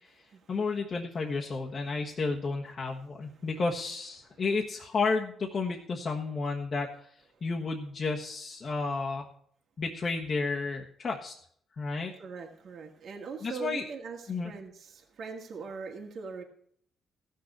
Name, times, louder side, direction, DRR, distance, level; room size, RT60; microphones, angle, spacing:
voice 1, 0.5-6.9 7.4-9.3 9.8-11.3 11.8-12.1 13.4-13.8 14.3-14.5, left 4 dB, 45° left, -2 dB, 1.4 m, -32 dB
voice 2, 12.2-16.4, right 5 dB, 60° right, 2 dB, 1.9 m, -41 dB
15.0 x 6.6 x 6.0 m, 0.62 s
cardioid pair, 90°, 0 cm